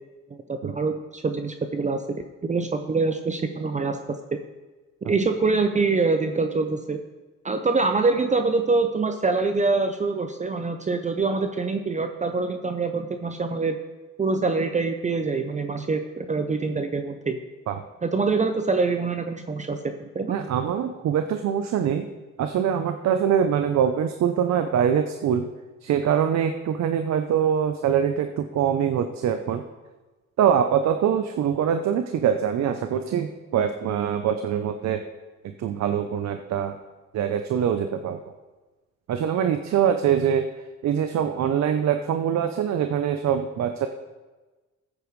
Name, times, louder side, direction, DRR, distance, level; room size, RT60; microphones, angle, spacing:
voice 1, 0.5-4.2 5.0-7.0 7.4-13.8 14.2-17.4 18.0-20.3, right 3 dB, 25° right, 7 dB, 0.6 m, -25 dB
voice 2, 20.3-22.1 22.4-25.5 25.8-29.6 30.4-35.0 35.4-36.8 37.1-38.2 39.1-43.9, right 8 dB, 65° right, 7 dB, 0.7 m, -24 dB
14.5 x 8.4 x 3.2 m, 1.2 s
cardioid pair, 90°, 30 cm